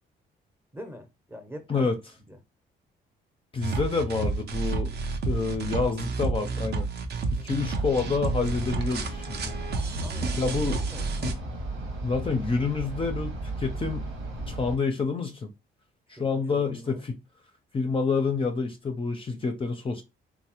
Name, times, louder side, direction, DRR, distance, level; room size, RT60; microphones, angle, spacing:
voice 1, 0.7-1.9 2.3-2.4 7.4-7.6 9.9-11.0 16.2-17.0, equal, 10° right, 0.7 m, -43 dB
voice 2, 3.5-5.0 5.2-6.9 7.3-9.5 10.3-10.9 11.2-11.3 12.0-14.1 14.5-15.5 16.1-17.1 17.7-20.0, left 4 dB, 25° left, 0.5 m, -28 dB
sound 1, 3.6-11.3, right 3 dB, 55° right, 0.6 m, -30 dB
sound 2, 7.6-14.8, right 2 dB, 80° right, 1.2 m, -36 dB
3.2 x 2.0 x 2.9 m
cardioid pair, 90°, 20 cm